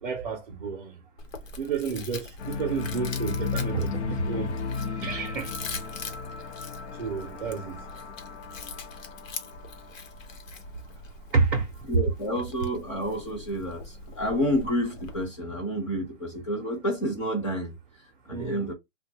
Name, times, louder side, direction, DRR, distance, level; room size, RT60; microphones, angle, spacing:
voice 1, 0.0-1.0 1.6-4.6 5.0-5.5 7.0-7.8 11.3-11.9 18.3-18.7, right 5 dB, 45° right, 0.6 m, -30 dB
Chewing mastication, 1.2-15.3, left 4 dB, 90° left, 1.0 m, -43 dB
sound 1, 2.4-10.6, left 5 dB, 60° left, 0.7 m, -35 dB
voice 2, 11.9-17.7 18.3-18.7, equal, 25° left, 0.8 m, -29 dB
3.5 x 2.2 x 2.8 m
hypercardioid pair, 180°, 38 cm